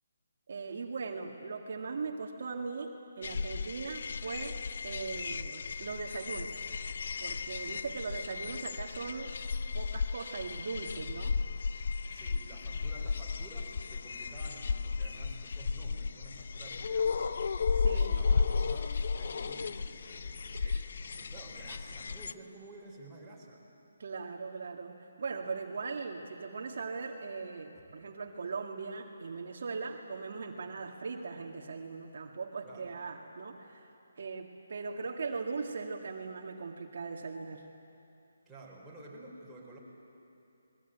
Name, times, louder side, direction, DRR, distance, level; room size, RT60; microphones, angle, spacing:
voice 1, 0.5-6.5 7.2-9.3 9.7-11.4 17.7-18.1 20.5-20.9 24.0-33.9 34.2-37.6, right 4 dB, 55° right, 2 dB, 1.9 m, -39 dB
sound 1, 3.2-22.3, left 5 dB, 55° left, 0.7 m, -34 dB
sound 2, 5.8-14.9, left 2 dB, 90° left, 4.7 m, -62 dB
voice 2, 12.1-17.4 17.9-23.6 27.7-27.8 30.6-30.8 32.6-33.0 38.5-39.8, right 2 dB, 5° right, -7 dB, 4.7 m, -51 dB
29.0 x 21.0 x 9.1 m, 2.8 s
hypercardioid pair, 165°, 0 cm